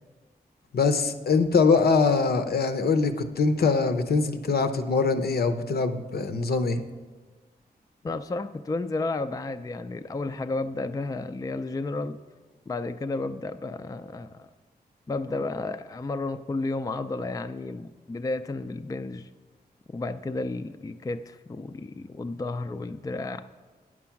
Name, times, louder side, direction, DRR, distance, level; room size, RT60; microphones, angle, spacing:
voice 1, 0.7-6.8, left 4 dB, 70° left, 7 dB, 0.7 m, -23 dB
voice 2, 8.0-12.2 12.7-14.5 15.1-19.3 19.9-23.5, left 3 dB, 20° left, 9 dB, 0.4 m, -32 dB
9.5 x 6.1 x 5.8 m, 1.3 s
cardioid pair, 60°, 17 cm